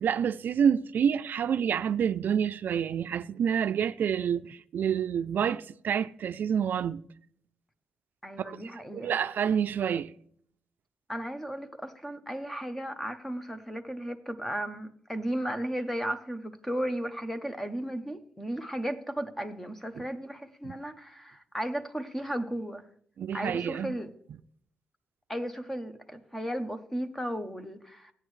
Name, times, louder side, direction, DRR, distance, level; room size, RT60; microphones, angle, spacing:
voice 1, 0.0-7.0 8.4-8.6 8.9-10.1 20.0-20.1 20.6-20.7 23.2-24.0, right 8 dB, 65° right, 0.3 m, -28 dB
voice 2, 8.2-9.2 11.1-22.9 23.3-24.1 25.3-28.1, right 1 dB, 5° left, 0.8 m, -35 dB
16.0 x 9.3 x 3.2 m
wide cardioid pair, 170°, 4 cm